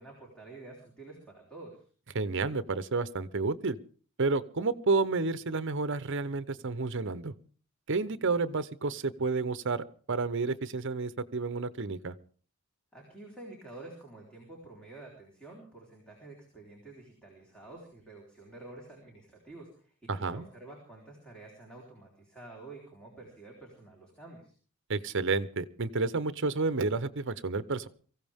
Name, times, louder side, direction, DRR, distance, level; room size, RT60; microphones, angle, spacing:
voice 1, 0.0-1.8 12.9-24.5, right 2 dB, 5° left, -2 dB, 4.0 m, -49 dB
voice 2, 2.1-3.8 4.2-7.3 7.9-12.1 20.1-20.5 24.9-27.9, right 3 dB, 55° right, 15 dB, 0.8 m, -30 dB
23.5 x 15.5 x 3.6 m, 0.42 s
head